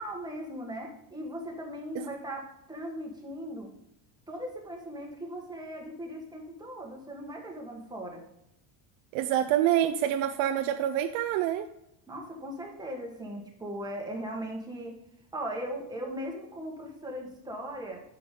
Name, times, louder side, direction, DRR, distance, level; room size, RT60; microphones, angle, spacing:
voice 1, 0.0-3.7 4.3-8.2 12.1-15.0 15.3-18.0, equal, 10° right, -1 dB, 1.6 m, -38 dB
voice 2, 9.1-11.7, right 11 dB, 70° right, 7 dB, 0.6 m, -26 dB
8.5 x 6.2 x 3.7 m, 0.82 s
cardioid pair, 145°, 48 cm